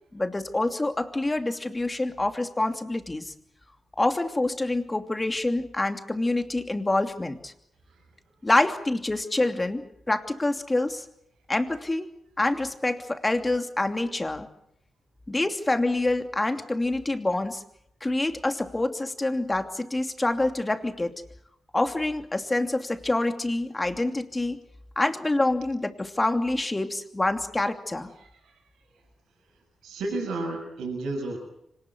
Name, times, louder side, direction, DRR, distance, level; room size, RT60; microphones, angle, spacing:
voice 1, 0.1-3.3 4.0-7.5 8.4-11.0 11.5-12.1 12.4-14.5 15.3-17.6 18.0-21.2 21.7-24.6 25.0-28.1, left 2 dB, 25° left, 7 dB, 2.8 m, -26 dB
voice 2, 28.2-28.5 29.8-31.4, right 2 dB, 80° right, 0 dB, 6.5 m, -32 dB
25.5 x 19.0 x 8.1 m, 0.77 s
hypercardioid pair, 40°, 0 cm